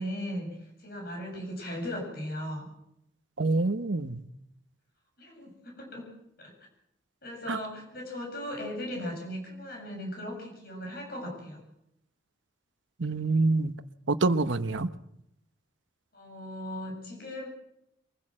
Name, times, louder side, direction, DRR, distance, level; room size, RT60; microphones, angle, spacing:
voice 1, 0.0-2.7 5.2-6.1 6.4-6.5 7.2-11.6 16.1-17.5, equal, 50° left, 1 dB, 7.6 m, -37 dB
voice 2, 3.4-4.2 7.5-7.6 13.0-13.7 14.1-14.9, right 3 dB, 70° right, 11 dB, 1.0 m, -26 dB
24.0 x 15.5 x 7.5 m, 0.81 s
head